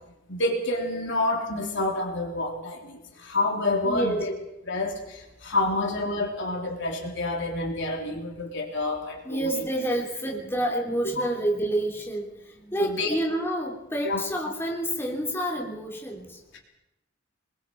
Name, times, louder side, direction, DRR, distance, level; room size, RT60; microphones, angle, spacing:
voice 1, 0.3-4.3 4.7-9.5 12.8-13.1 14.0-14.2, left 2 dB, 65° left, 2 dB, 3.5 m, -28 dB
voice 2, 3.8-4.2 9.2-16.4, right 1 dB, 10° left, -1 dB, 3.4 m, -28 dB
26.0 x 22.0 x 4.7 m, 0.90 s
head